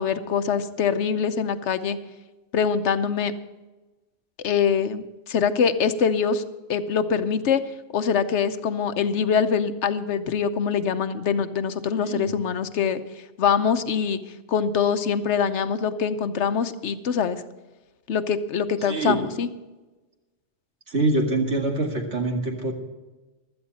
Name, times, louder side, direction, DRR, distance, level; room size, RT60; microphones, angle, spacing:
voice 1, 0.0-2.0 2.5-3.3 4.4-6.4 6.7-7.6 7.9-13.0 13.4-14.2 14.5-17.4 18.1-19.5, left 6 dB, 75° left, 11 dB, 1.1 m, -24 dB
voice 2, 18.8-19.2 20.9-22.7, right 2 dB, 70° right, 1 dB, 2.4 m, -25 dB
16.0 x 12.0 x 4.1 m, 1.2 s
omnidirectional pair, 1.2 m